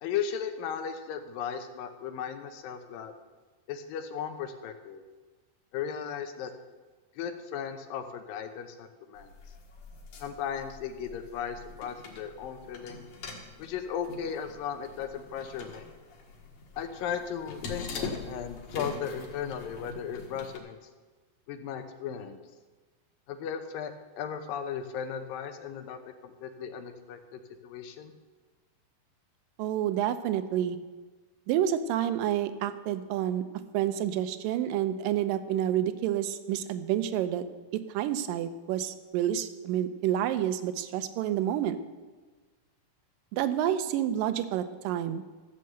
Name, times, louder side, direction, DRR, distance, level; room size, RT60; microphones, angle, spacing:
voice 1, 0.0-3.1 3.7-5.0 5.7-6.5 7.2-9.3 10.2-13.1 13.6-15.9 16.8-20.8 21.5-22.4 23.3-28.1, left 7 dB, 75° left, 8 dB, 2.5 m, -36 dB
sound 1, 9.2-20.6, left 4 dB, 55° left, 2.5 m, -43 dB
voice 2, 29.6-30.8 31.5-33.4 33.7-37.4 37.7-41.8 43.3-45.2, right 11 dB, 80° right, 11 dB, 2.3 m, -29 dB
14.0 x 6.5 x 7.8 m, 1.3 s
omnidirectional pair, 4.2 m